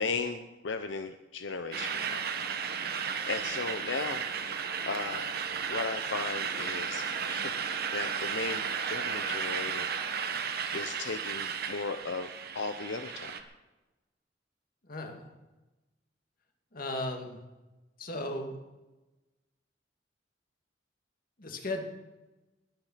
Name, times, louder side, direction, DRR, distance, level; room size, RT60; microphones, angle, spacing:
voice 1, 0.0-2.3 3.3-4.2 4.9-5.3 5.7-9.9 10.7-13.4, left 4 dB, 85° left, 8 dB, 0.7 m, -36 dB
sound 1, 1.7-13.4, right 6 dB, 55° right, 1.2 m, -34 dB
voice 2, 14.8-15.3 16.7-17.4 18.0-18.6 21.4-21.8, left 1 dB, 50° left, 3 dB, 2.3 m, -36 dB
21.0 x 9.1 x 5.8 m, 1.1 s
head